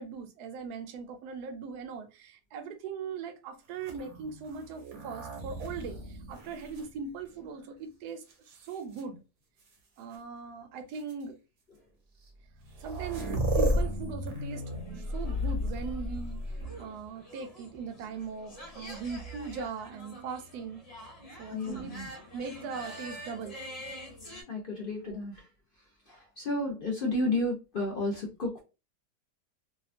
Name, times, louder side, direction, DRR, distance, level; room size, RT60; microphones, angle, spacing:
voice 1, 0.0-9.2 10.0-11.4 12.8-16.4 16.8-20.8 21.4-21.9 22.3-23.6 25.0-25.2, right 5 dB, 75° right, 1.1 m, -40 dB
sound 1, 3.8-7.6 8.3-9.0 10.1-10.2 10.9-11.1 12.3-12.4 12.5-17.0 18.9-19.6, equal, 60° right, 0.8 m, -34 dB
sound 2, 14.5-24.4, equal, 30° left, 0.8 m, -47 dB
voice 2, 21.5-22.1 24.5-25.4 26.1-28.6, left 2 dB, 60° left, 0.5 m, -32 dB
2.8 x 2.2 x 2.4 m
omnidirectional pair, 1.8 m